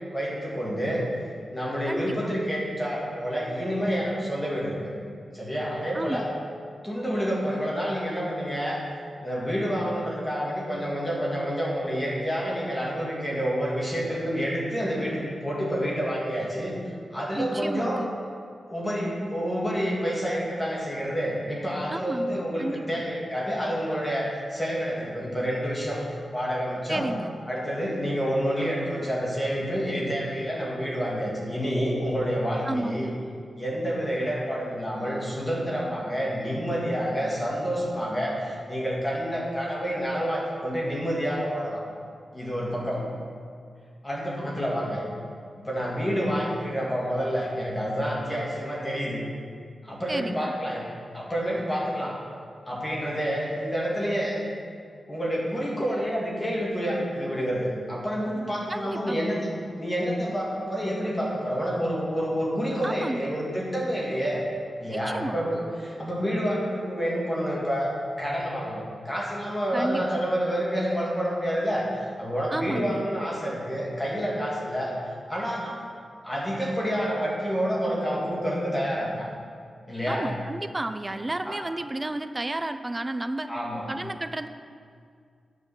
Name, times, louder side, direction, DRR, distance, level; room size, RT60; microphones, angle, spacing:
voice 1, 0.1-1.1 1.5-4.8 5.3-6.3 6.8-8.8 9.2-16.7 17.1-18.0 18.7-26.0 26.3-27.1 27.5-33.1 33.6-41.8 42.3-43.0 44.0-45.0 45.6-49.2 49.8-50.8 51.1-52.1 52.7-54.4 55.1-64.4 64.8-67.9 68.2-71.9 72.2-74.9 75.3-75.8 76.2-79.3 79.9-80.3 81.5-81.6 83.5-83.8, equal, 10° left, -4 dB, 1.9 m, -28 dB
voice 2, 1.9-2.4 5.9-6.3 17.4-18.1 21.9-23.0 26.9-27.3 32.7-33.2 50.1-50.5 58.7-59.2 62.8-63.4 65.1-65.4 69.7-70.0 72.5-73.0 80.1-83.5 83.9-84.5, right 2 dB, 15° right, 9 dB, 0.4 m, -32 dB
9.5 x 5.3 x 6.9 m, 2.2 s
wide cardioid pair, 175°, 0 cm